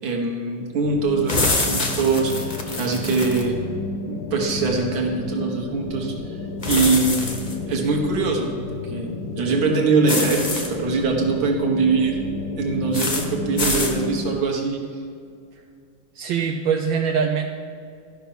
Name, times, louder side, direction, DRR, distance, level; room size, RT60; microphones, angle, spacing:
voice 1, 0.0-3.6 4.1-6.4 6.7-7.4 7.7-8.5 8.8-12.2 12.6-14.8, right 4 dB, 50° right, 0 dB, 1.7 m, -23 dB
sound 1, 0.8-14.4, left 3 dB, 75° left, 1.5 m, -32 dB
sound 2, 1.3-3.4 6.6-7.5 10.1-10.7 12.9-13.3 13.6-14.0, left 2 dB, 30° left, 0.8 m, -25 dB
voice 2, 16.1-17.6, right 6 dB, 75° right, 1 dB, 1.4 m, -23 dB
13.0 x 5.8 x 5.6 m, 2.3 s
omnidirectional pair, 2.2 m